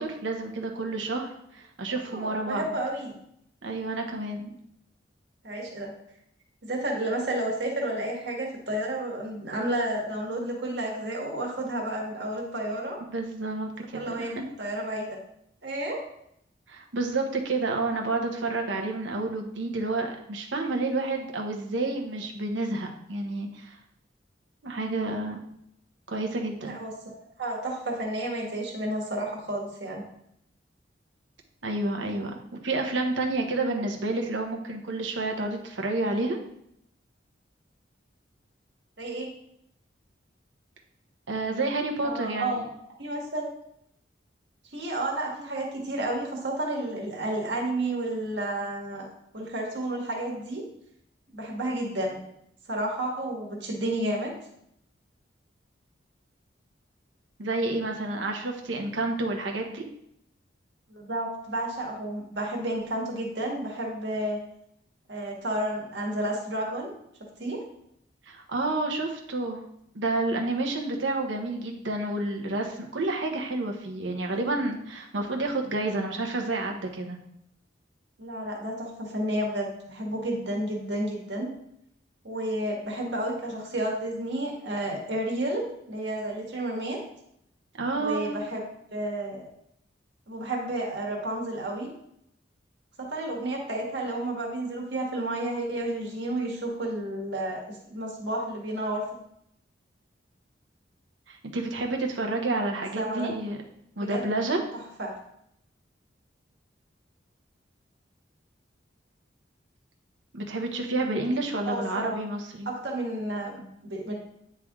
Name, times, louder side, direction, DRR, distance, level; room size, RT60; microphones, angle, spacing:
voice 1, 0.0-2.7 3.6-4.5 13.1-14.3 16.7-23.8 24.6-25.4 26.1-26.8 31.6-36.4 41.3-42.7 57.4-59.8 68.3-69.6 69.9-77.2 87.8-88.4 101.3-103.6 104.0-104.6 110.3-112.7, right 2 dB, 85° right, 2 dB, 1.0 m, -29 dB
voice 2, 2.1-3.1 5.4-5.9 6.6-13.0 13.9-15.2 15.6-16.0 26.6-30.0 39.0-39.3 42.0-42.6 43.0-43.5 44.7-49.1 49.3-50.6 51.3-52.2 52.7-54.3 60.9-64.4 65.1-66.9 67.4-67.6 78.2-81.5 82.2-87.0 88.0-88.6 88.9-89.4 90.3-91.9 93.0-99.0 103.0-103.3 104.0-104.3 105.0-105.1 111.7-112.1 112.6-114.1, right 1 dB, 65° right, -1 dB, 1.6 m, -31 dB
9.1 x 3.4 x 3.6 m, 0.75 s
head